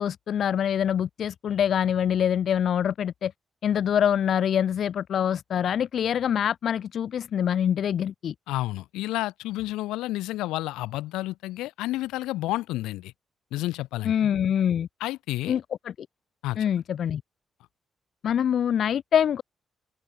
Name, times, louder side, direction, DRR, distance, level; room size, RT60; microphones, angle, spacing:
voice 1, 0.0-3.3 3.6-8.3 14.0-14.9 15.5-15.9 16.6-17.2 18.2-19.4, left 9 dB, 70° left, 3.6 m, -25 dB
voice 2, 8.5-13.1 13.5-14.1 15.0-15.6 16.4-16.6, left 17 dB, 90° left, 1.3 m, -30 dB
open air
supercardioid pair, 55°, 0 cm